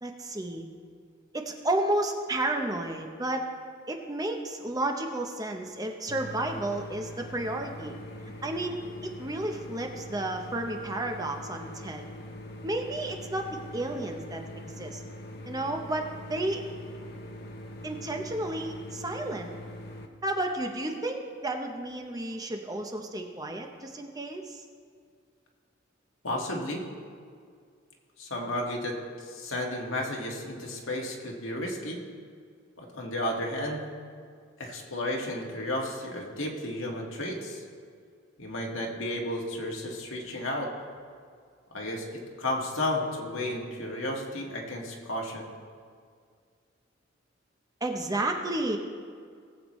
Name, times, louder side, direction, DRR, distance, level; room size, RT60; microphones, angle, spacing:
voice 1, 0.0-0.6 1.3-3.4 3.9-8.0 8.4-12.1 12.6-14.4 14.8-15.0 15.4-16.6 17.8-19.5 20.2-24.6 47.8-48.8, right 1 dB, 20° right, 3 dB, 0.7 m, -32 dB
sound 1, 6.1-20.1, left 1 dB, 50° left, 0.9 m, -43 dB
voice 2, 26.2-26.8 28.2-32.0 32.8-33.8 34.6-37.6 38.4-40.7 41.7-45.5, left 1 dB, 80° left, -1 dB, 1.8 m, -33 dB
19.5 x 8.0 x 3.1 m, 2.1 s
head